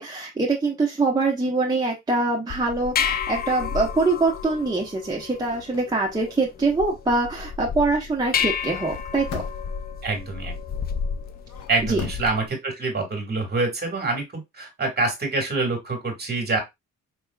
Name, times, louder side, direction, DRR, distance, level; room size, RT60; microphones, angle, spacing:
voice 1, 0.0-9.4 11.8-12.0, right 3 dB, 15° right, -2 dB, 1.0 m, -24 dB
sound 1, 2.5-12.5, left 7 dB, 30° left, 0.4 m, -31 dB
sound 2, 5.5-5.9 8.7-9.8 11.2-12.3, left 10 dB, 65° left, 0.8 m, -39 dB
voice 2, 10.0-10.5 11.7-16.6, right 3 dB, 35° right, 3 dB, 1.7 m, -26 dB
4.8 x 2.9 x 2.3 m, 0.20 s
cardioid pair, 90°, 30 cm